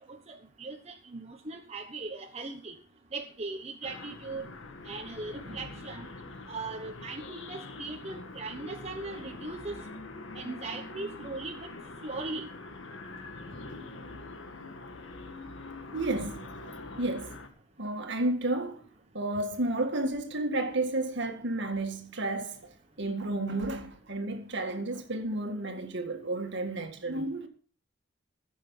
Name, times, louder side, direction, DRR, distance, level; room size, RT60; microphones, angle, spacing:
voice 1, 0.1-2.7 3.1-4.5 4.8-6.1 6.5-9.8 10.3-11.7 12.0-12.5, right 3 dB, 30° right, 1.2 m, -39 dB
sound 1, 3.8-17.5, left 2 dB, 70° left, 1.9 m, -44 dB
voice 2, 15.9-16.5 16.8-17.4 17.8-18.8 19.1-27.5, right 2 dB, 60° right, 2.0 m, -32 dB
15.5 x 7.7 x 5.5 m
head